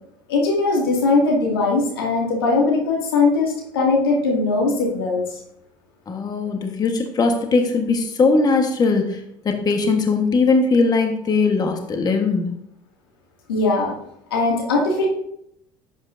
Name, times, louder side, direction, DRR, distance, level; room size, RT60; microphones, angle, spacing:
voice 1, 0.3-5.2 13.5-13.9 14.3-15.1, left 3 dB, 90° left, -1 dB, 2.2 m, -20 dB
voice 2, 6.1-12.5, left 4 dB, 35° left, 4 dB, 1.3 m, -20 dB
10.5 x 8.3 x 2.6 m, 0.76 s
hypercardioid pair, 80°, 12 cm